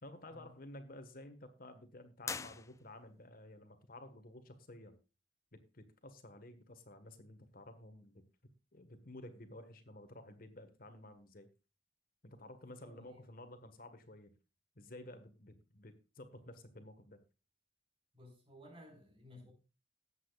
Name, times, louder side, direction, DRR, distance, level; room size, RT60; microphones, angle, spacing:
voice 1, 0.0-4.9 5.5-8.2 8.7-11.5 12.2-14.3 14.7-17.2, left 1 dB, 50° left, 1.4 m, -53 dB
sound 1, 2.2-3.3, left 5 dB, 15° left, 0.4 m, -44 dB
voice 2, 12.9-13.2 18.1-19.5, left 1 dB, 30° right, 4.9 m, -56 dB
18.5 x 8.2 x 2.4 m
head